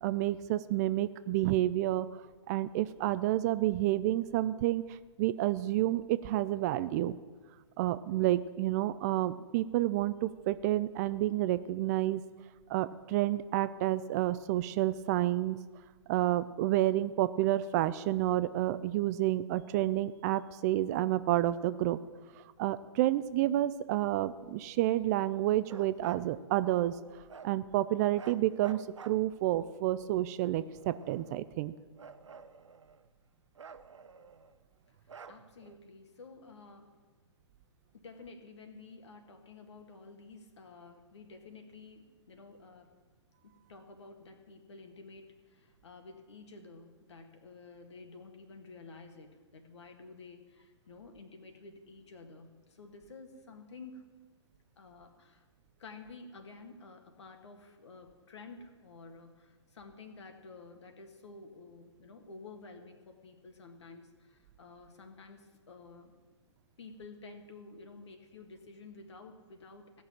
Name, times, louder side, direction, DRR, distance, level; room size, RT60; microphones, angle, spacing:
voice 1, 0.0-2.1 2.5-7.2 7.8-12.2 12.7-15.6 16.1-22.0 22.4-31.7, right 14 dB, 35° right, 14 dB, 0.4 m, -30 dB
Bark, 25.6-26.3 27.3-27.6 28.1-29.6 30.4-31.5 32.0-33.1 33.6-34.6 35.1-35.8, right 6 dB, 75° right, 0.8 m, -51 dB
voice 2, 34.9-36.9 37.9-42.9 43.4-54.1 54.8-55.5 55.8-66.1 66.8-70.0, left 3 dB, 65° left, 5 dB, 2.0 m, -51 dB
16.0 x 6.3 x 8.7 m, 1.4 s
figure-of-eight pair, 120°, 16 cm